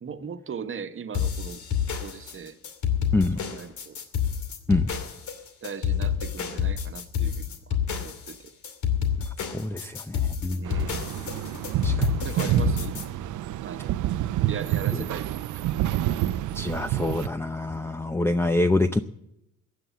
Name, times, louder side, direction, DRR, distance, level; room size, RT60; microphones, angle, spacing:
voice 1, 0.0-1.6 2.0-2.6 3.3-4.0 5.6-8.5 10.5-11.1 12.2-13.0 13.6-14.0 14.5-15.7, right 6 dB, 45° right, 10 dB, 1.3 m, -38 dB
sound 1, 1.1-13.0, left 8 dB, 75° left, 2.6 m, -28 dB
voice 2, 9.4-10.6 11.8-12.1 14.9-15.0 16.5-19.0, left 2 dB, 10° left, 10 dB, 0.6 m, -26 dB
sound 2, 10.6-17.3, right 13 dB, 80° right, 0.7 m, -28 dB
15.5 x 9.8 x 7.1 m, 0.81 s
cardioid pair, 90°, 30 cm